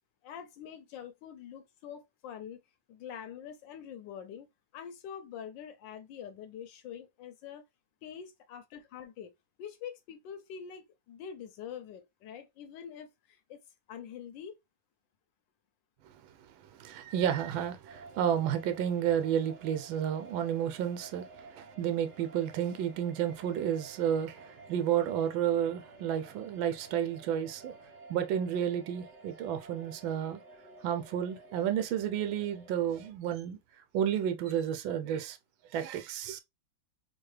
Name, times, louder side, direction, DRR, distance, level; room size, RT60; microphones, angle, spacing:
voice 1, 0.2-2.6 2.9-4.5 4.7-7.6 8.0-9.3 9.6-13.6 13.9-14.6, left 8 dB, 75° left, 1.2 m, -45 dB
voice 2, 16.5-27.7 28.1-30.4 30.8-33.6 33.9-35.4 35.7-36.4, right 9 dB, 85° right, 1.4 m, -31 dB
sound 1, 17.9-33.1, right 3 dB, 35° right, 1.5 m, -52 dB
4.7 x 2.3 x 3.1 m
omnidirectional pair, 2.1 m